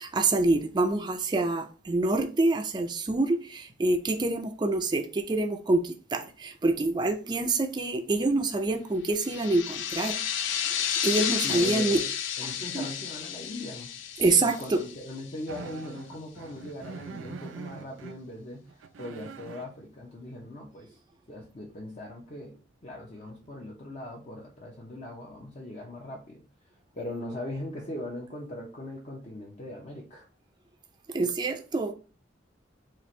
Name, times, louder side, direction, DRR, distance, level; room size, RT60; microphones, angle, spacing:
voice 1, 0.0-10.2 11.0-12.0 12.4-12.9 14.2-14.8 31.1-31.9, right 2 dB, 25° right, 0.4 m, -26 dB
sound 1, 9.2-15.5, left 9 dB, 80° left, 0.4 m, -32 dB
voice 2, 11.4-12.0 12.4-13.9 14.4-20.9 21.3-22.5 22.8-26.4 26.9-30.3, left 1 dB, 35° left, 0.6 m, -40 dB
sound 2, 15.5-18.2 18.7-19.7 22.5-22.6 23.2-23.5, right 5 dB, 90° right, 0.4 m, -43 dB
4.2 x 2.5 x 3.1 m
head